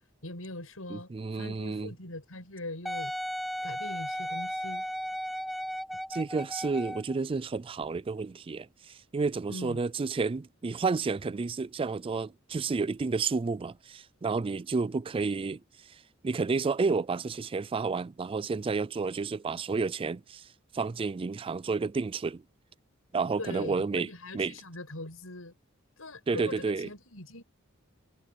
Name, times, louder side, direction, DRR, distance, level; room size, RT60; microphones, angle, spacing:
voice 1, 0.2-3.1 3.6-4.9 9.5-9.8 23.4-25.5 26.0-27.4, left 2 dB, 90° left, 6.9 m, -41 dB
voice 2, 0.9-1.9 6.1-15.6 16.2-20.4 20.7-22.4 23.1-24.1 24.3-24.5 26.3-26.9, right 4 dB, 25° right, 0.3 m, -31 dB
Wind instrument woodwind instrument, 2.9-7.2 7.8-7.9, equal, ahead, 1.6 m, -35 dB
head